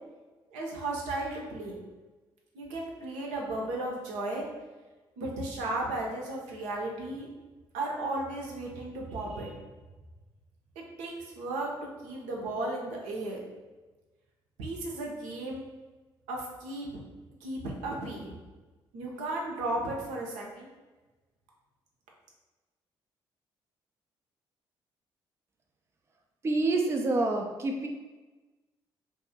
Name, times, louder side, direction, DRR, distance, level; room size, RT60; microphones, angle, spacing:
voice 1, 0.5-1.8 2.5-4.5 5.2-7.3 7.7-9.6 10.8-11.7 12.0-13.4 14.6-15.6 16.3-16.9 17.4-18.3 18.9-20.7, right 2 dB, 70° right, -1 dB, 0.6 m, -35 dB
voice 2, 26.4-27.9, right 2 dB, 20° right, 2 dB, 0.4 m, -27 dB
2.6 x 2.5 x 2.7 m, 1.2 s
figure-of-eight pair, 45°, 13 cm